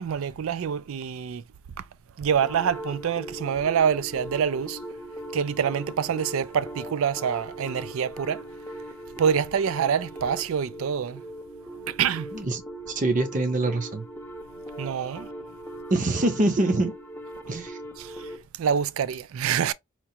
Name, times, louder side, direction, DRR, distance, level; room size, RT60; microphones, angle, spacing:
voice 1, 0.0-1.4 1.8-1.9 2.2-4.8 5.3-8.4 9.2-11.2 11.9-12.3 14.8-15.3 18.0-18.3 18.6-19.7, right 7 dB, 75° right, 0.4 m, -26 dB
sound 1, 2.4-18.4, right 1 dB, 10° left, 0.5 m, -40 dB
voice 2, 12.9-14.0 15.9-16.9 17.5-17.8, right 2 dB, 35° right, 0.7 m, -24 dB
4.4 x 2.3 x 2.8 m
head